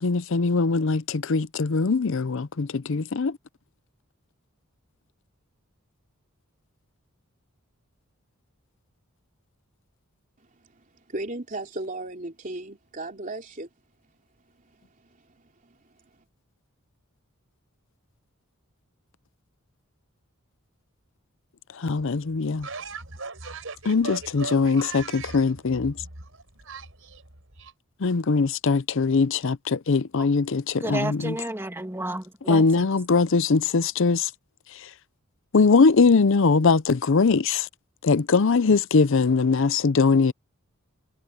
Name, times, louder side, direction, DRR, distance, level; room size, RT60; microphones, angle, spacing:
voice 1, 0.0-3.3 21.8-22.6 23.9-25.9 28.0-31.3 32.5-34.3 35.5-37.7 38.0-40.3, left 4 dB, 60° left, 0.6 m, -21 dB
voice 2, 10.7-13.7 15.6-15.8, right 2 dB, 40° right, 3.4 m, -35 dB
voice 3, 21.9-27.7, right 4 dB, 65° right, 5.3 m, -40 dB
voice 4, 30.8-32.9, right 1 dB, 10° right, 2.4 m, -32 dB
head